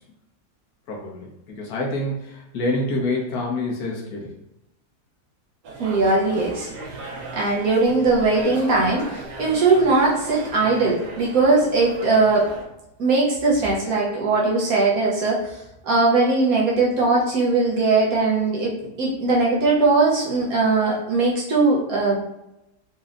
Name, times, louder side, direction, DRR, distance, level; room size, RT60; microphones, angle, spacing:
voice 1, 0.9-4.3, left 2 dB, 65° left, -2 dB, 1.4 m, -27 dB
sound 1, 5.6-12.7, right 2 dB, 85° right, 1.4 m, -37 dB
voice 2, 5.8-6.7 7.3-12.5 13.0-15.4 15.8-22.2, right 3 dB, 65° right, -4 dB, 1.3 m, -20 dB
4.2 x 3.1 x 2.5 m, 0.89 s
omnidirectional pair, 1.7 m